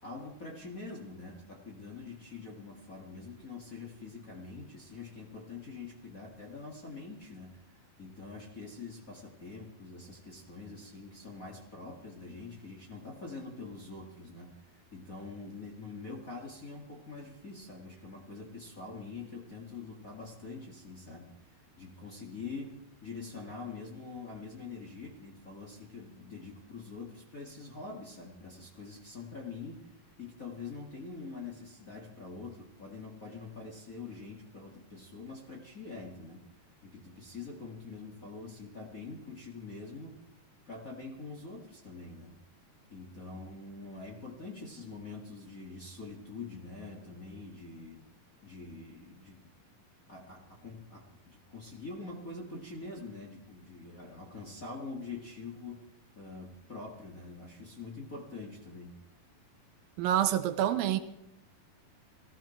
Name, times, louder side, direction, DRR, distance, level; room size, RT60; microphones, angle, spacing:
voice 1, 0.0-7.6 8.0-22.7 23.0-36.5 36.8-40.1 40.7-42.4 42.9-48.0 48.4-49.5 50.1-55.8 56.1-58.9, left 3 dB, 30° left, 1.7 m, -45 dB
voice 2, 60.0-61.0, right 11 dB, 80° right, 2.4 m, -27 dB
19.0 x 15.5 x 4.5 m
omnidirectional pair, 4.3 m